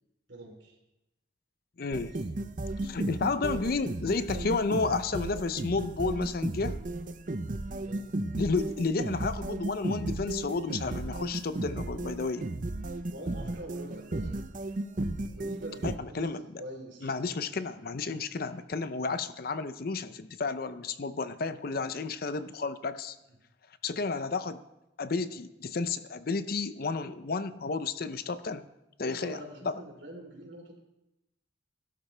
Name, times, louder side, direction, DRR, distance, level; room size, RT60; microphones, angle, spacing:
voice 1, 0.3-0.8 7.8-8.1 13.1-14.4 15.3-16.3 16.6-17.4 29.0-30.8, right 1 dB, 65° right, 1 dB, 3.3 m, -44 dB
voice 2, 1.8-2.1 2.8-6.7 8.4-12.5 15.8-16.6 17.0-23.2 23.8-24.6 25.0-28.6 29.0-29.4 29.7-29.8, left 4 dB, 50° left, 12 dB, 0.5 m, -32 dB
sound 1, 1.9-16.0, right 2 dB, 45° right, 0.6 m, -34 dB
17.5 x 12.0 x 3.3 m, 0.92 s
head